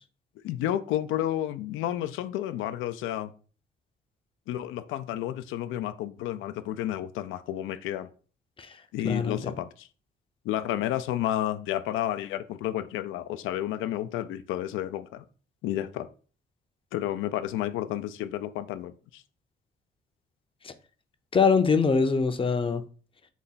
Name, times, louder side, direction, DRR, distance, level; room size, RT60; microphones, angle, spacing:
voice 1, 0.4-3.3 4.5-8.1 8.9-9.9 10.4-15.2 15.6-16.1 16.9-19.2, left 12 dB, 90° left, 0.4 m, -31 dB
voice 2, 9.0-9.5 20.6-20.7 21.3-22.8, left 5 dB, 25° left, 0.5 m, -23 dB
4.0 x 2.2 x 3.9 m
cardioid pair, 90°, 20 cm